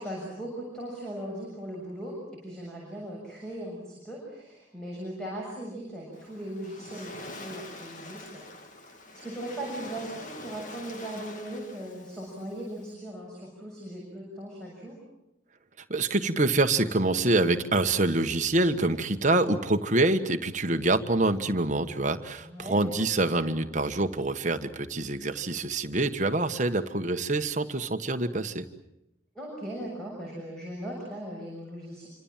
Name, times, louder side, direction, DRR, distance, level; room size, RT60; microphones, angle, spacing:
voice 1, 0.0-8.4 8.8-15.0 22.4-22.8 29.4-32.1, right 1 dB, 5° left, -3 dB, 6.9 m, -38 dB
Waves surf, 6.1-12.9, left 2 dB, 40° left, 2.3 m, -45 dB
voice 2, 15.9-28.6, right 2 dB, 40° right, 7 dB, 1.4 m, -26 dB
27.0 x 25.5 x 7.5 m, 0.84 s
head